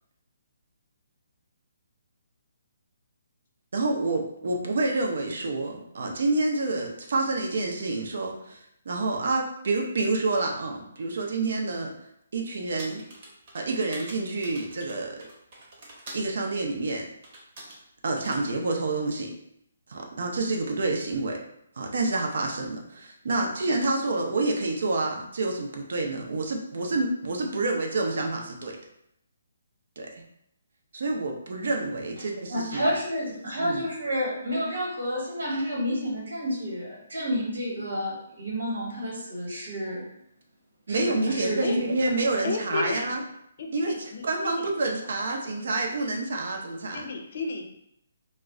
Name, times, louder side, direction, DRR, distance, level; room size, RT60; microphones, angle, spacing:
voice 1, 3.7-11.9 12.3-13.1 13.5-15.2 16.1-17.1 18.0-19.3 19.9-21.4 21.8-28.7 30.0-30.1 30.9-33.0 33.6-33.8 40.9-43.2 43.7-47.0, right 2 dB, 65° right, 1 dB, 0.6 m, -28 dB
sound 1, 12.8-16.3 17.2-17.8 18.2-18.5, right 1 dB, 40° right, 0.9 m, -44 dB
voice 2, 32.5-40.1 40.9-41.8, equal, 80° right, -2 dB, 1.2 m, -30 dB
voice 3, 42.4-43.1 43.6-44.7 46.9-47.7, left 4 dB, 50° left, 1 dB, 0.5 m, -32 dB
2.3 x 2.1 x 3.6 m, 0.75 s
hypercardioid pair, 160°, 0 cm